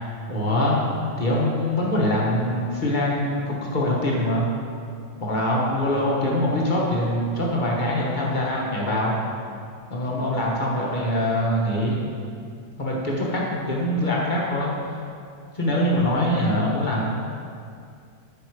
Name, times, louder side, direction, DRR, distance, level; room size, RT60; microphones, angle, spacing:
voice 1, 0.3-0.8 1.2-4.4 5.2-9.1 9.9-12.0 12.8-14.7 15.5-17.0, left 1 dB, 30° left, -4 dB, 1.1 m, -23 dB
8.5 x 5.7 x 4.8 m, 2.3 s
omnidirectional pair, 2.2 m